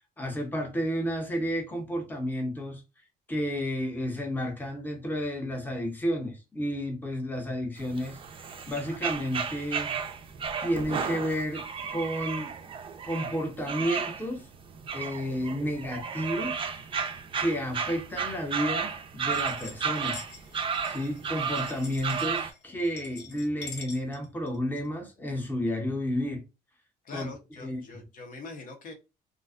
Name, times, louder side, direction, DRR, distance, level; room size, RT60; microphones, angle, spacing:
voice 1, 0.2-2.8 3.3-8.2 8.7-9.9 10.6-11.6 11.9-12.5 13.0-14.4 14.9-16.5 17.4-20.2 20.8-26.4 27.1-27.3 27.6-28.0, equal, 10° left, 0.7 m, -31 dB
sound 1, 7.8-22.5, right 6 dB, 30° right, 0.4 m, -33 dB
sound 2, 19.3-24.9, left 4 dB, 80° left, 0.9 m, -46 dB
voice 2, 27.0-28.9, left 3 dB, 50° left, 0.7 m, -43 dB
2.4 x 2.2 x 2.4 m
cardioid pair, 110°, 17 cm